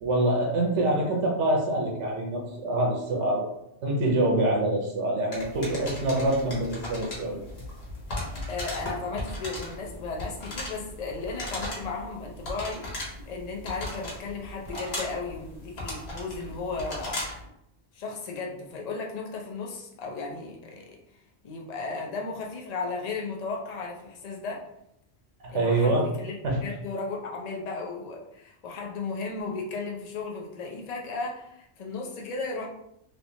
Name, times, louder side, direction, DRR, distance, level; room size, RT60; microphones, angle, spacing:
voice 1, 0.0-3.4 3.8-7.4 25.5-26.1 26.4-26.6, right 1 dB, 85° right, -1 dB, 1.1 m, -25 dB
sound 1, 5.3-17.5, left 1 dB, 65° left, 1.3 m, -37 dB
voice 2, 8.5-17.2 17.9-21.0 21.4-24.7 25.5-32.7, left 4 dB, 45° left, -1 dB, 0.6 m, -35 dB
3.2 x 2.9 x 2.7 m, 0.78 s
omnidirectional pair, 1.2 m